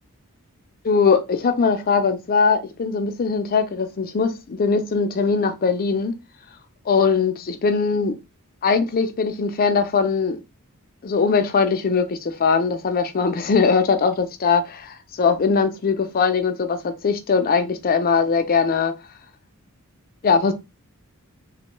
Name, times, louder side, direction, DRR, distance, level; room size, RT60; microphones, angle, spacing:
voice 1, 0.8-6.1 6.9-8.1 8.6-10.4 11.0-18.9 20.2-20.5, left 5 dB, 40° left, 0.4 m, -20 dB
3.1 x 2.2 x 3.0 m
head